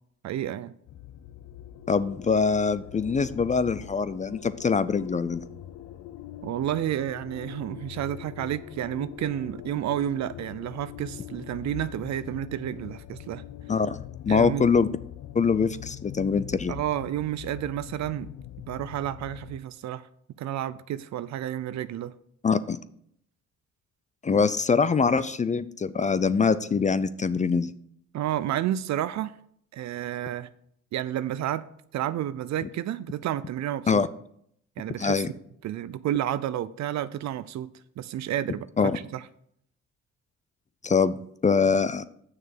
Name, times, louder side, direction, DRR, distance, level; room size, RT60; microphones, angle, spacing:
voice 1, 0.2-0.7 6.4-13.4 14.3-14.6 16.7-18.3 18.7-20.1 20.4-22.1 28.1-29.4 29.7-30.5 30.9-31.6 31.9-34.0 34.8-35.2 35.6-37.7 38.0-38.7 39.1-39.2, right 12 dB, 65° right, 0.5 m, -30 dB
sound 1, 0.9-19.6, left 12 dB, 75° left, 0.7 m, -42 dB
voice 2, 1.9-5.4 13.7-14.0 14.3-14.9 15.3-16.7 22.4-22.8 24.2-27.7 32.6-32.7 33.9-34.1 35.0-35.3 38.8-39.0 40.8-41.2 41.4-42.0, left 5 dB, 25° left, 0.4 m, -23 dB
7.3 x 6.5 x 5.9 m
cardioid pair, 90°, 30 cm